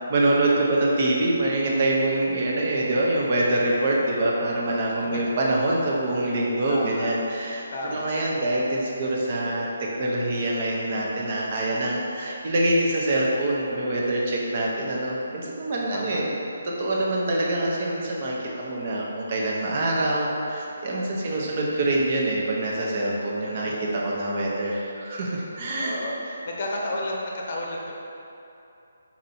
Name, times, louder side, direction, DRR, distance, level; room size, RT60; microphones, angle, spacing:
voice 1, 0.0-7.6 7.9-16.2 16.7-26.0, right 1 dB, 45° right, -3 dB, 0.7 m, -25 dB
voice 2, 6.7-7.1 7.7-8.1 15.9-16.2 21.2-21.4 23.6-23.9 25.8-27.9, left 1 dB, 50° left, -2 dB, 0.7 m, -32 dB
4.2 x 2.6 x 4.2 m, 2.8 s
figure-of-eight pair, 150°, 0 cm